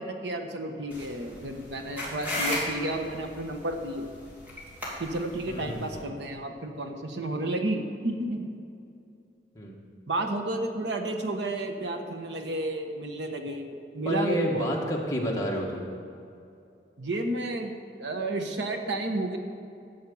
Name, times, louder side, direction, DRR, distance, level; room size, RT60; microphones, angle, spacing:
voice 1, 0.0-4.1 5.0-8.5 10.1-14.7 17.0-19.4, right 1 dB, 80° right, 4 dB, 1.2 m, -31 dB
sound 1, 0.9-6.0, left 1 dB, 10° right, 2.9 m, -36 dB
voice 2, 5.5-6.0 9.5-9.8 14.0-15.9, equal, 20° left, -2 dB, 1.6 m, -30 dB
13.0 x 8.4 x 7.0 m, 2.6 s
head